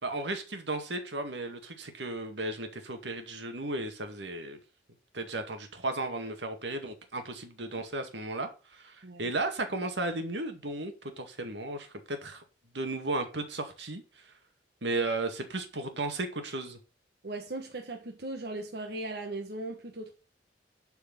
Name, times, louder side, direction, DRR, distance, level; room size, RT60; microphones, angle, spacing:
voice 1, 0.0-4.6 5.1-12.4 12.7-14.0 14.8-16.8, right 2 dB, 80° right, 2.1 m, -35 dB
voice 2, 17.2-20.1, right 2 dB, 65° right, 1.5 m, -38 dB
11.5 x 4.7 x 6.0 m
head